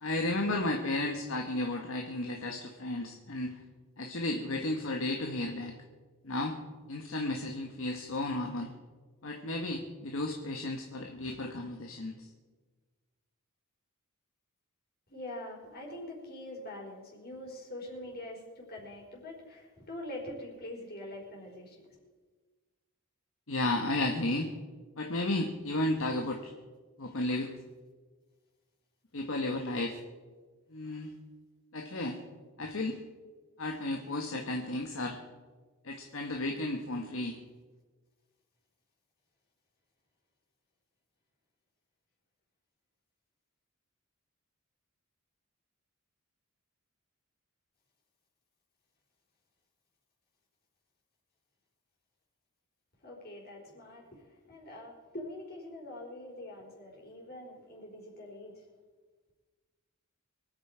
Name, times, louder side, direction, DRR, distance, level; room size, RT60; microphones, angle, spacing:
voice 1, 0.0-3.6 4.0-5.7 6.2-6.6 6.9-8.7 9.2-12.1 23.5-24.5 25.0-26.5 27.0-27.5 29.1-30.0 30.7-31.1 31.7-32.2 32.6-33.0 33.6-35.2 35.8-37.4, left 2 dB, 60° left, 2 dB, 1.4 m, -33 dB
voice 2, 15.1-21.8 53.0-58.7, left 1 dB, 45° left, -2 dB, 4.7 m, -44 dB
24.5 x 9.2 x 5.0 m, 1.4 s
head